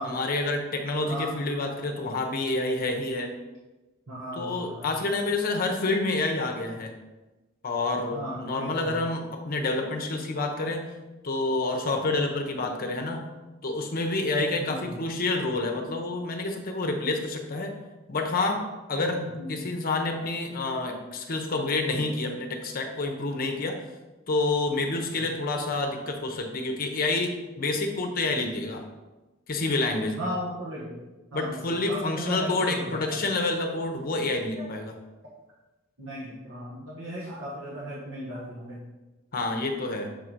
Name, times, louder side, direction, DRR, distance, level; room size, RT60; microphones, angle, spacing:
voice 1, 0.0-3.3 4.4-6.9 7.6-10.9 11.2-13.2 13.6-17.7 18.1-19.2 19.5-23.8 24.3-28.8 29.5-30.2 31.3-34.9 39.3-40.1, left 2 dB, 45° left, 4 dB, 0.7 m, -28 dB
voice 2, 1.1-1.4 4.1-4.9 8.1-9.0 14.6-14.9 19.0-19.6 30.2-31.0 31.3-33.2 34.6-34.7 36.0-38.8, equal, 70° right, -6 dB, 1.2 m, -36 dB
6.7 x 3.8 x 4.5 m, 1.1 s
head